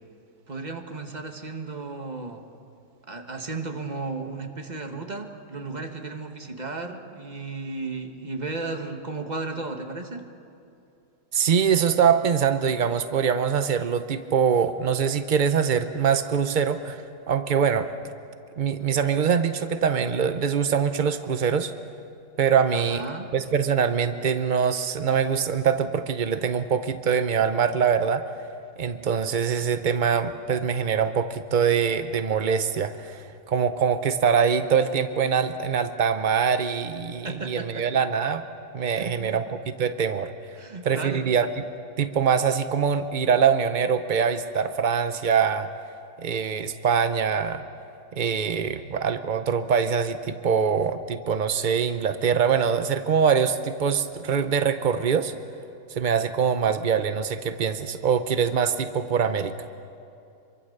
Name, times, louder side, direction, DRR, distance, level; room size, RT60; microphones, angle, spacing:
voice 1, 0.5-2.5 3.1-10.3 22.7-23.3 37.2-38.0 38.9-39.4 40.5-41.3, right 3 dB, 25° right, 4 dB, 1.6 m, -34 dB
voice 2, 11.3-17.9 18.6-21.7 22.4-23.0 23.3-28.3 28.8-38.4 38.7-40.3 40.8-41.5 42.0-45.7 46.2-47.6 48.2-55.3 55.9-59.5, right 7 dB, 75° right, 9 dB, 0.4 m, -23 dB
26.0 x 23.5 x 6.7 m, 2.6 s
omnidirectional pair, 1.9 m